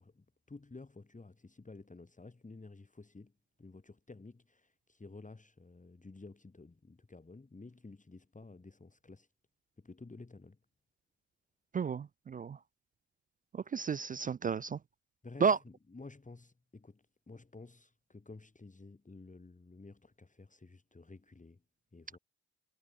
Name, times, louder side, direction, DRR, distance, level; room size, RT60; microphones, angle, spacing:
voice 1, 0.0-3.3 3.6-9.3 9.8-10.6 15.2-21.6 21.9-22.2, left 3 dB, 20° left, 2.9 m, -52 dB
voice 2, 11.7-12.6 13.5-14.8 15.4-15.6, right 6 dB, 25° right, 0.4 m, -32 dB
hypercardioid pair, 40°, 34 cm